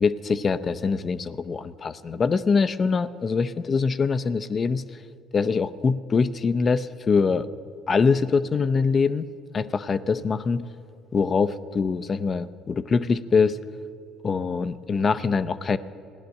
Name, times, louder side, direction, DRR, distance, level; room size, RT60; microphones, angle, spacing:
voice 1, 0.0-4.8 5.3-7.5 7.9-9.3 9.5-10.6 11.1-13.6 14.2-15.8, left 5 dB, 40° left, 13 dB, 0.6 m, -23 dB
16.0 x 10.5 x 6.5 m, 2.5 s
hypercardioid pair, 60°, 0 cm